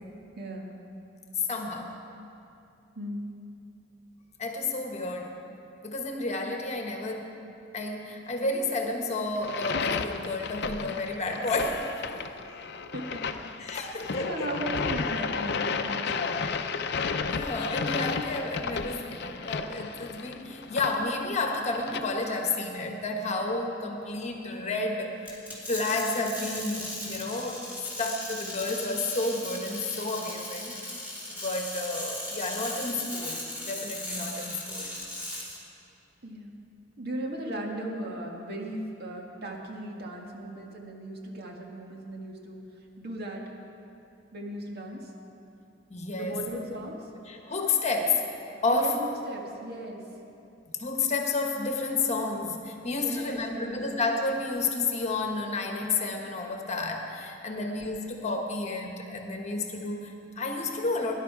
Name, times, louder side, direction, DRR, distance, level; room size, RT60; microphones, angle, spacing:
voice 1, 0.4-0.8 3.0-3.3 12.5-13.6 14.2-16.5 36.2-36.5 37.0-42.6 43.0-43.4 44.3-45.1 46.1-47.0 48.7-50.0 53.0-53.8 57.5-57.8, right 1 dB, 60° right, 0 dB, 1.8 m, -37 dB
voice 2, 1.5-1.9 4.4-5.4 5.8-7.3 7.7-11.9 13.6-14.5 17.3-27.6 28.0-30.8 31.3-34.9 45.9-46.4 47.3-48.2 48.6-49.0 50.8-61.1, left 3 dB, 35° left, 2 dB, 1.3 m, -31 dB
sound 1, 9.4-22.0, left 5 dB, 60° left, 0.6 m, -33 dB
sound 2, 25.2-35.6, left 1 dB, 10° right, 3.3 m, -37 dB
19.0 x 11.0 x 4.8 m, 2.7 s
head